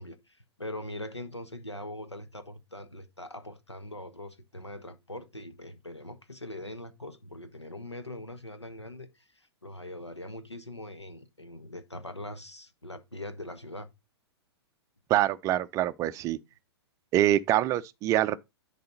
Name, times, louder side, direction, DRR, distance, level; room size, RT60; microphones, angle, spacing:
voice 1, 0.0-13.9, left 1 dB, 90° left, 1.2 m, -42 dB
voice 2, 15.1-16.4 17.1-18.4, right 13 dB, 20° right, 0.4 m, -25 dB
10.5 x 4.1 x 3.9 m
figure-of-eight pair, 110°, 14 cm